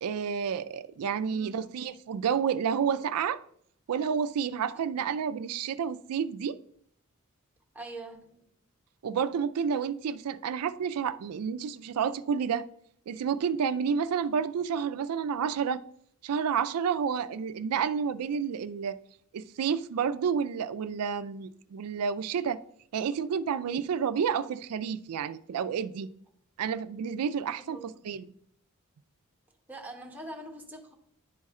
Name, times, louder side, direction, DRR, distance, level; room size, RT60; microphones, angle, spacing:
voice 1, 0.0-3.4 3.9-6.6 9.0-12.7 13.1-15.8 16.2-19.0 19.3-22.6 22.9-26.1 26.6-28.3, right 7 dB, 85° right, 0.4 m, -30 dB
voice 2, 1.3-1.7 4.9-5.0 7.7-8.4 27.6-28.1 29.7-30.9, right 1 dB, 10° right, 1.0 m, -44 dB
10.5 x 3.6 x 4.2 m
head